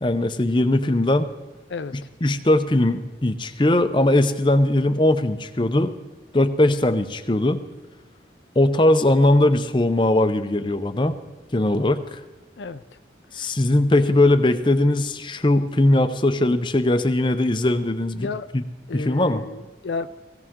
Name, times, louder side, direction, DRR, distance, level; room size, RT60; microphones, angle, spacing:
voice 1, 0.0-1.3 1.9-5.9 6.3-7.6 8.6-11.1 11.5-12.2 13.3-18.3 18.5-18.6 18.9-19.4, left 1 dB, 25° left, 9 dB, 0.6 m, -20 dB
voice 2, 12.6-13.0 13.4-13.5 18.2-18.5 18.9-20.2, left 4 dB, 75° left, 11 dB, 0.5 m, -32 dB
17.0 x 16.5 x 3.7 m, 1.2 s
head